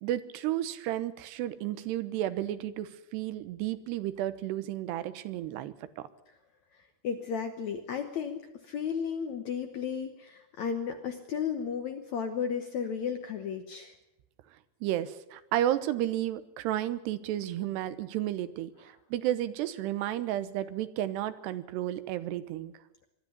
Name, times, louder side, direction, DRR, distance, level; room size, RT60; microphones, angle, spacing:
voice 1, 0.0-6.1 14.8-22.7, right 13 dB, 90° right, 13 dB, 3.1 m, -32 dB
voice 2, 6.7-13.9, left 7 dB, 70° left, 7 dB, 1.8 m, -34 dB
22.0 x 12.5 x 9.8 m, 0.91 s
omnidirectional pair, 4.7 m